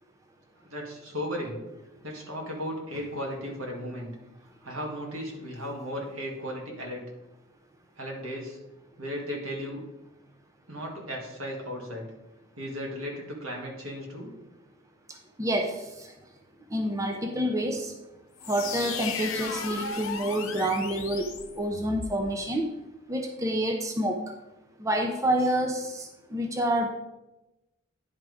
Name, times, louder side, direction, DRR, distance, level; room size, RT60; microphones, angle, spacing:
voice 1, 0.6-1.6 2.0-4.1 4.6-7.0 8.0-8.6 9.0-9.8 10.7-12.1 12.6-14.3, equal, 80° right, 0 dB, 2.0 m, -35 dB
voice 2, 15.1-16.1 16.7-17.9 18.4-22.6 23.1-24.2 24.8-26.9, right 1 dB, 15° right, 3 dB, 0.5 m, -28 dB
sound 1, 18.4-22.2, left 5 dB, 80° left, 1.0 m, -35 dB
10.5 x 3.7 x 4.8 m, 0.99 s
head